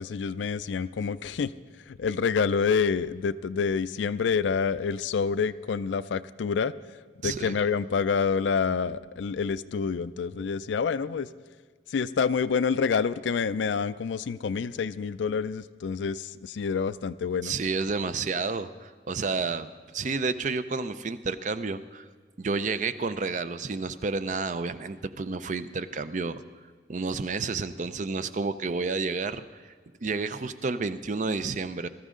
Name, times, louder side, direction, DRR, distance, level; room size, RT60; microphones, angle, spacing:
voice 1, 0.0-1.5 1.9-6.7 7.2-11.3 11.9-17.5, left 5 dB, 75° left, 15 dB, 0.4 m, -27 dB
voice 2, 7.2-7.5 17.4-19.7 19.9-22.0 22.4-26.4 26.9-29.6 30.0-31.9, right 4 dB, 40° right, 13 dB, 0.4 m, -30 dB
20.5 x 13.5 x 3.7 m, 1.5 s
head